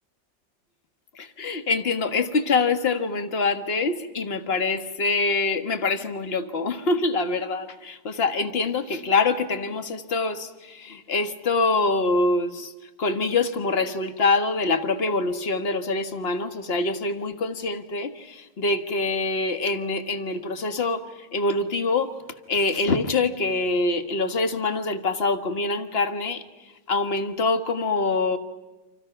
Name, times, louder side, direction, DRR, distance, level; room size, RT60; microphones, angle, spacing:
voice 1, 1.1-12.7 13.0-22.1 22.5-26.4 26.9-28.4, left 3 dB, 35° left, 9 dB, 1.5 m, -25 dB
29.5 x 27.0 x 5.9 m, 1.1 s
omnidirectional pair, 2.0 m